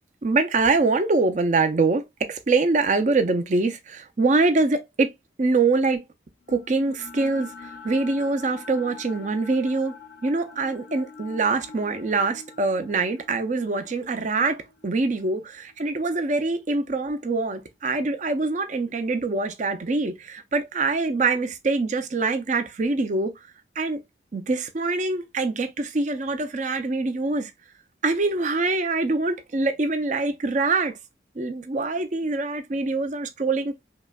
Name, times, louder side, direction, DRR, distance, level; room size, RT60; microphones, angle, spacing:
voice 1, 0.2-5.1 5.4-6.0 6.5-9.9 10.2-23.3 23.8-24.0 24.3-27.5 28.0-31.0 31.4-33.7, right 3 dB, 40° right, 0.5 m, -24 dB
sound 1, 6.5-16.7, left 4 dB, 65° left, 0.6 m, -45 dB
5.0 x 2.1 x 2.2 m
head